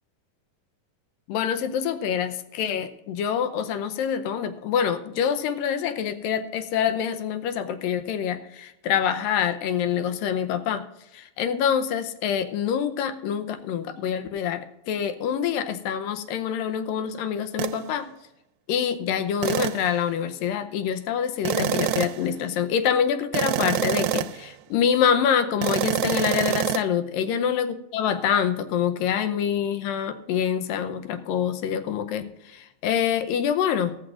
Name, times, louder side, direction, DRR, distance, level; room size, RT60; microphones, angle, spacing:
voice 1, 1.3-10.8 11.1-18.1 18.7-34.0, left 8 dB, 80° left, 9 dB, 2.4 m, -26 dB
sound 1, 17.6-17.8 19.4-19.9 21.4-22.3 23.3-24.5 25.6-26.8, right 13 dB, 80° right, 2.1 m, -26 dB
15.5 x 13.5 x 2.5 m, 0.85 s
omnidirectional pair, 4.1 m